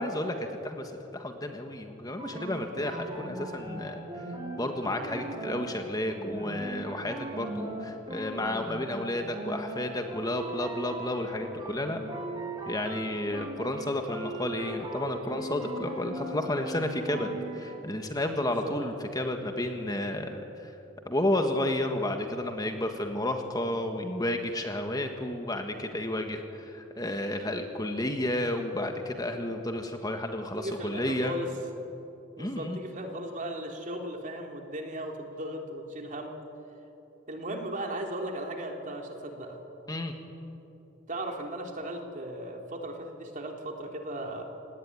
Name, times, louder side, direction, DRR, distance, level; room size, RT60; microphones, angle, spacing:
voice 1, 0.0-4.2 4.6-12.0 12.6-20.7 21.0-31.3 32.4-32.8 39.9-40.1, left 1 dB, 20° left, 5 dB, 1.6 m, -32 dB
sound 1, 2.2-17.8, right 1 dB, 20° right, 4.9 m, -39 dB
voice 2, 30.4-31.5 32.3-36.4 37.3-39.6 41.1-44.4, right 1 dB, 40° right, 2 dB, 3.2 m, -37 dB
28.5 x 19.0 x 9.8 m, 2.9 s
head